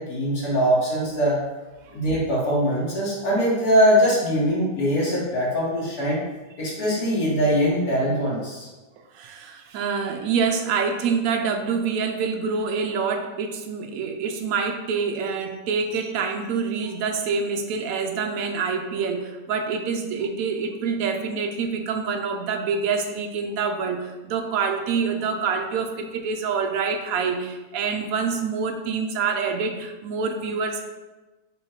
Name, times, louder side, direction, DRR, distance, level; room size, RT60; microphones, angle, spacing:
voice 1, 0.0-1.4 1.9-6.2 6.6-8.7, equal, 60° left, -5 dB, 1.8 m, -22 dB
voice 2, 9.1-30.8, right 5 dB, 70° right, 4 dB, 0.9 m, -26 dB
5.6 x 3.0 x 2.9 m, 1.1 s
omnidirectional pair, 1.8 m